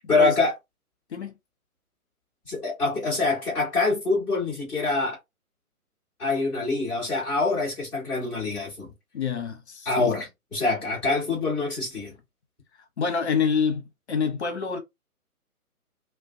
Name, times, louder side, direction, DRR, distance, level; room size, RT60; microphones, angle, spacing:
voice 1, 0.1-0.5 2.4-5.2 6.2-8.9 9.8-12.1, left 3 dB, 5° left, 0.7 m, -25 dB
voice 2, 9.1-10.1 13.0-13.8 14.1-14.8, left 6 dB, 50° left, 0.8 m, -26 dB
2.5 x 2.2 x 2.5 m
figure-of-eight pair, 130°, 45 cm